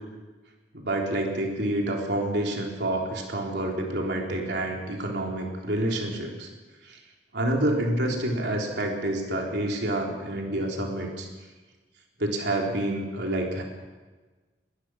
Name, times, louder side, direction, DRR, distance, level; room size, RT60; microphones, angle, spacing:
voice 1, 0.7-6.5 6.8-7.0 7.3-11.3 12.2-13.6, right 1 dB, 70° right, 0 dB, 3.8 m, -28 dB
21.0 x 20.0 x 6.4 m, 1.3 s
head